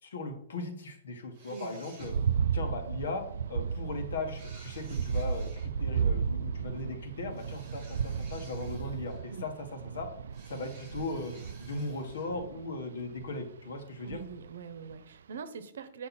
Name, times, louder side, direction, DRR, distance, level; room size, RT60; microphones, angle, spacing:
voice 1, 0.0-2.1 2.5-3.2 3.5-10.1 10.5-11.3 11.6-14.2, left 3 dB, 80° left, 5 dB, 1.7 m, -38 dB
sound 1, 1.3-2.5 4.3-5.7 7.3-9.4 10.3-12.3, right 3 dB, 25° right, 2.8 m, -55 dB
sound 2, 2.0-13.4 14.1-14.5 14.9-15.0, right 6 dB, 90° right, 0.3 m, -34 dB
voice 2, 14.0-16.1, right 5 dB, 70° right, 12 dB, 0.9 m, -43 dB
8.4 x 5.2 x 4.3 m, 0.68 s
hypercardioid pair, 175°, 0 cm